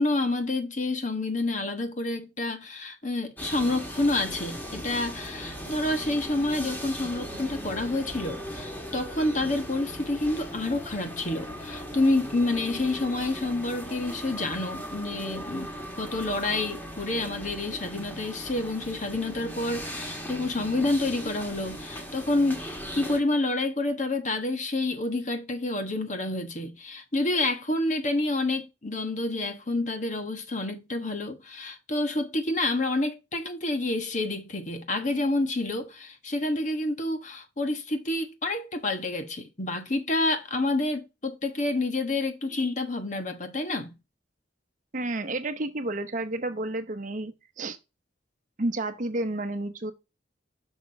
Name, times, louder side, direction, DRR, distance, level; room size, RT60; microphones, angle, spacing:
voice 1, 0.0-43.9, left 2 dB, 40° left, 1.3 m, -28 dB
sound 1, 3.4-23.2, equal, 10° left, 1.6 m, -38 dB
voice 2, 44.9-47.8 48.6-49.9, right 2 dB, 45° right, 0.9 m, -31 dB
6.2 x 5.8 x 3.4 m
head